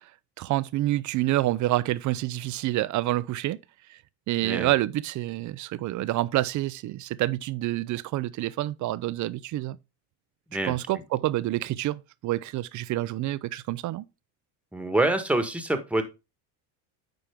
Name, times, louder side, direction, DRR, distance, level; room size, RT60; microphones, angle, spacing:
voice 1, 0.4-3.6 3.9-4.0 4.3-9.8 10.7-14.0, right 16 dB, 40° right, 0.5 m, -28 dB
voice 2, 14.7-16.0, right 2 dB, 5° right, 1.3 m, -26 dB
8.9 x 4.5 x 3.5 m
supercardioid pair, 100°, 46 cm